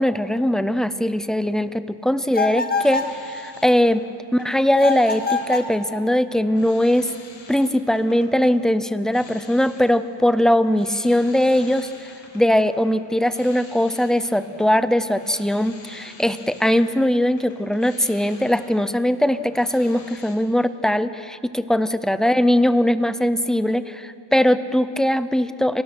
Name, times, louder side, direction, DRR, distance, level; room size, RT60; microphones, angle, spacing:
voice 1, 0.0-4.0 4.3-7.1 7.5-25.8, left 1 dB, ahead, 12 dB, 0.5 m, -20 dB
sound 1, 2.3-3.2 4.8-5.8, left 4 dB, 20° left, 1.3 m, -24 dB
sound 2, 2.7-4.0 4.3-20.3, left 4 dB, 75° left, 5.0 m, -47 dB
29.5 x 18.0 x 6.1 m, 2.5 s
cardioid pair, 145°, 47 cm